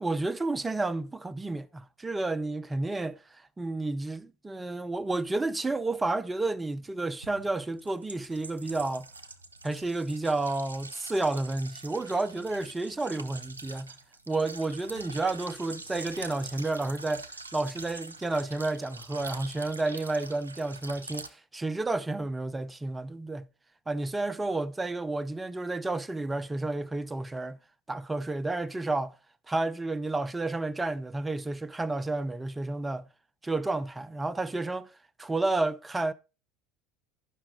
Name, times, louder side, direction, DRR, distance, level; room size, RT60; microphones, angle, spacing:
voice 1, 0.0-9.1 9.6-14.0 14.3-23.5 23.9-27.6 27.9-29.1 29.5-33.1 33.4-36.1, right 2 dB, 15° right, 0.5 m, -31 dB
sound 1, 5.9-6.0 7.2-21.3, right 3 dB, 90° right, 0.5 m, -45 dB
11.0 x 5.7 x 3.8 m
figure-of-eight pair, 70°, 0 cm